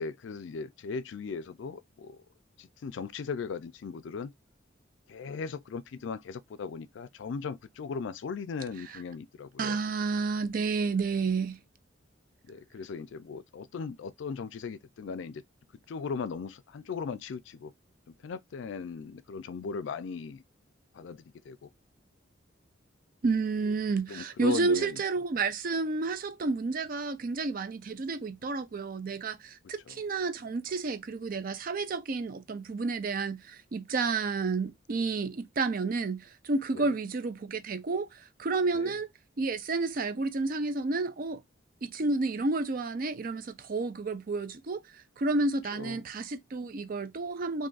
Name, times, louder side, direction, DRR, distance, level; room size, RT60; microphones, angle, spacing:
voice 1, 0.0-2.2 2.6-4.3 5.1-9.8 12.5-15.4 15.9-17.7 18.2-20.4 20.9-21.7 24.1-25.0 29.9-30.0 36.7-36.9 38.7-38.9 45.7-46.0, left 5 dB, 75° left, 0.4 m, -38 dB
voice 2, 9.6-11.6 23.2-39.1 39.4-41.4 41.8-44.8 45.2-47.7, right 3 dB, 45° right, 0.4 m, -30 dB
2.6 x 2.4 x 3.8 m
head